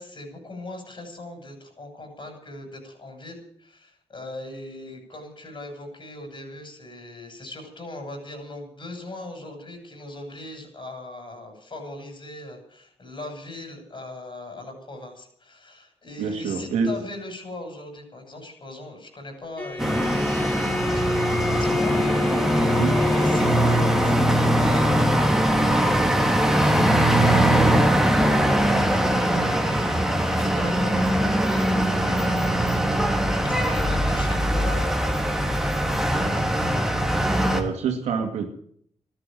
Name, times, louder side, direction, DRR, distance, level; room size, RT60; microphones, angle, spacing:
voice 1, 0.0-32.9 33.3-36.4, left 1 dB, 45° left, 4 dB, 7.1 m, -39 dB
voice 2, 16.2-16.9 22.8-23.0 37.5-38.5, right 5 dB, 90° right, 3 dB, 2.4 m, -26 dB
Bowed string instrument, 19.6-24.4, left 3 dB, 15° left, 1.5 m, -28 dB
sound 1, 19.8-37.6, right 1 dB, 5° right, 3.1 m, -21 dB
13.5 x 11.5 x 9.2 m, 0.63 s
cardioid pair, 55°, 11 cm